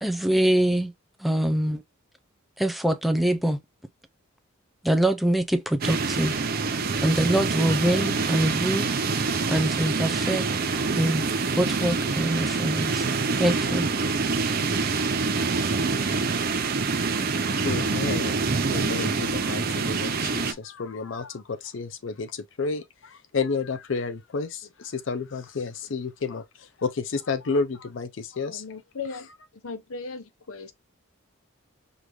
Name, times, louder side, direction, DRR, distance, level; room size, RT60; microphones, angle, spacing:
voice 1, 0.0-0.9 1.2-1.8 2.6-3.6 4.8-6.4 7.0-8.9 9.5-10.5 11.0-11.3 11.6-13.0 13.4-13.9, right 1 dB, ahead, 0.4 m, -24 dB
sound 1, 5.8-20.5, right 4 dB, 45° right, 0.6 m, -26 dB
voice 2, 17.5-18.4 18.7-26.4 26.8-28.6, left 4 dB, 65° left, 0.5 m, -31 dB
voice 3, 28.4-30.7, left 4 dB, 90° left, 0.8 m, -38 dB
5.1 x 2.5 x 3.0 m
head